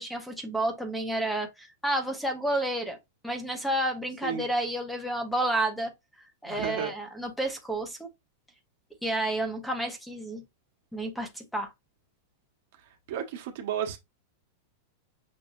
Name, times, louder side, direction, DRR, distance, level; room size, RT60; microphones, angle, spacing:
voice 1, 0.0-3.0 3.2-5.9 6.4-8.1 9.0-10.4 10.9-11.7, right 1 dB, ahead, 1.3 m, -30 dB
voice 2, 6.4-6.9 13.1-14.0, right 8 dB, 60° right, 1.4 m, -32 dB
6.6 x 2.8 x 2.6 m
supercardioid pair, 140°, 0 cm